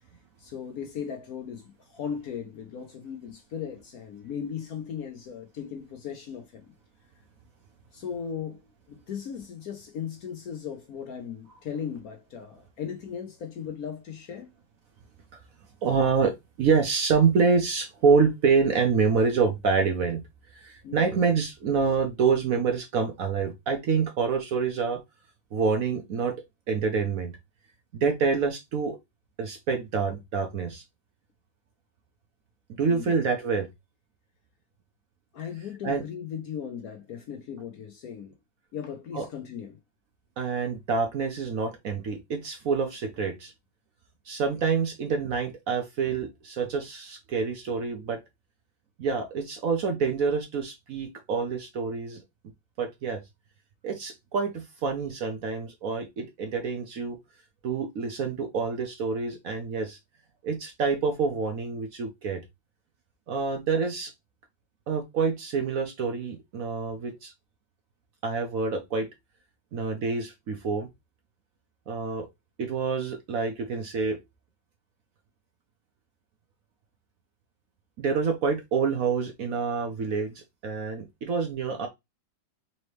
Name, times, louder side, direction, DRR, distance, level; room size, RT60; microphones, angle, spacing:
voice 1, 0.4-6.7 7.9-14.5 20.8-21.1 32.9-33.1 35.3-38.3 38.7-39.8, left 7 dB, 65° left, 1.0 m, -37 dB
voice 2, 15.8-20.2 20.5-25.0 25.5-26.3 26.7-27.4 27.9-29.0 29.4-30.8 32.8-33.7 35.8-36.0 39.1-39.2 40.4-43.5 44.3-48.2 49.0-52.2 52.8-53.2 53.8-57.2 57.6-60.0 60.4-62.4 63.3-64.1 64.9-67.3 68.2-69.1 69.7-70.9 71.9-72.3 72.6-74.2 78.0-81.9, right 5 dB, 60° right, 1.0 m, -27 dB
4.2 x 2.9 x 3.1 m
omnidirectional pair, 2.0 m